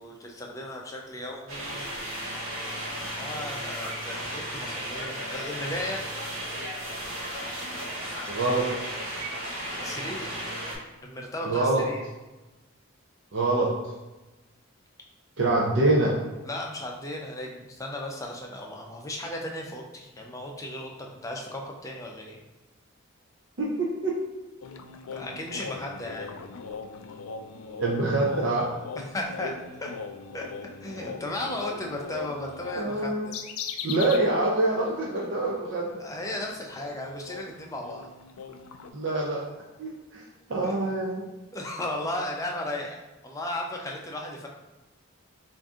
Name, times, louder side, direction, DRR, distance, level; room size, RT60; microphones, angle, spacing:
voice 1, 0.0-1.9 3.1-6.1 9.8-10.3 11.0-12.0 16.4-20.9 21.2-22.4 25.1-26.3 29.1-29.5 29.8-29.9 30.3-30.5 30.8-33.4 36.0-38.1 40.6-40.9 41.5-43.0 43.2-44.5, left 1 dB, 15° left, 0 dB, 0.4 m, -35 dB
sound 1, 1.5-10.8, equal, 85° right, 1.4 m, -35 dB
voice 2, 8.3-8.7 11.4-11.8 13.3-13.9 15.4-16.1 23.6-24.2 27.8-28.7 32.8-33.3 33.8-35.9 38.9-39.4 39.8-40.2 40.5-41.2, right 2 dB, 55° right, -3 dB, 0.5 m, -25 dB
sound 2, 24.6-34.3 34.6-34.8 35.1-38.9, left 5 dB, 90° left, 0.3 m, -40 dB
3.6 x 2.6 x 3.6 m, 1.1 s
head